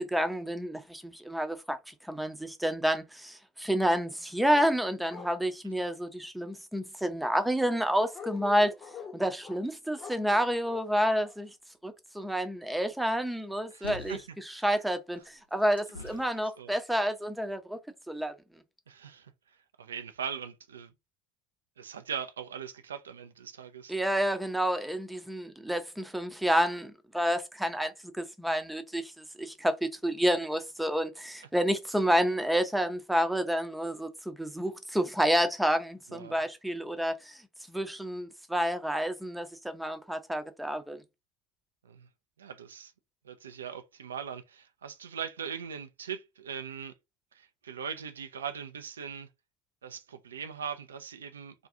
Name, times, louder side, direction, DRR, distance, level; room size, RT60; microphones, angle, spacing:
voice 1, 0.0-8.7 9.1-11.5 11.8-14.2 14.5-17.8 18.1-18.3 23.9-37.4 37.7-41.0, equal, 5° right, 0.5 m, -29 dB
sound 1, 4.5-4.7 5.1-5.4 8.1-9.6 10.0-10.9 11.2-11.4, left 5 dB, 35° left, 0.8 m, -44 dB
voice 2, 13.7-14.7 16.6-16.7 18.9-19.3 19.8-20.9 21.8-23.9 36.1-36.4 41.8-42.1 42.4-42.9 43.2-46.9 47.3-49.3 49.8-51.7, right 7 dB, 80° right, 0.3 m, -40 dB
sound 2, 13.8-14.3 15.1-16.5 17.2-17.3, left 3 dB, 90° left, 0.6 m, -44 dB
2.5 x 2.3 x 2.6 m
figure-of-eight pair, 70°, 0 cm